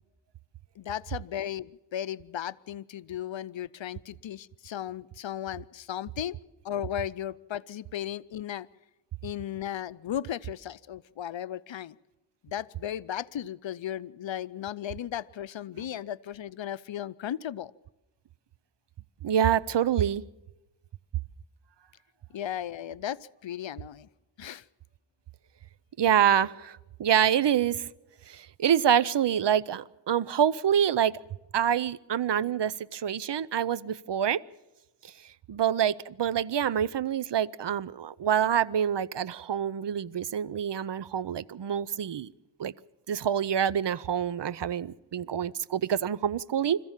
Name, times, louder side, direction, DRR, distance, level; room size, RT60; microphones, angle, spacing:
voice 1, 0.8-6.4 6.6-8.7 9.2-12.0 12.4-17.7 22.3-24.1 24.4-24.6, left 10 dB, 70° left, 18 dB, 0.6 m, -36 dB
voice 2, 19.2-20.2 26.0-27.9 28.3-31.2 31.5-34.4 35.5-42.3 42.6-42.7 43.1-46.8, right 9 dB, 60° right, 18 dB, 0.6 m, -26 dB
26.0 x 14.5 x 7.3 m, 1.0 s
wide cardioid pair, 65°, 47 cm